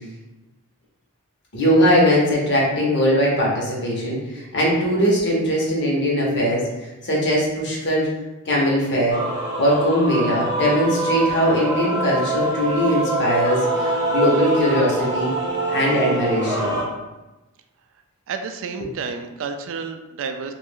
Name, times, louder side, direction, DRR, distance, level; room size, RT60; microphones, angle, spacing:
voice 1, 1.5-6.6 7.0-8.1 8.4-9.2 9.6-15.3 15.7-16.7, equal, 55° left, -4 dB, 1.0 m, -20 dB
Male singing / Female singing / Musical instrument, 9.1-16.8, right 1 dB, 20° right, 0.8 m, -24 dB
voice 2, 18.3-20.5, right 5 dB, 65° right, 6 dB, 0.3 m, -30 dB
3.1 x 2.5 x 3.6 m, 1.0 s
head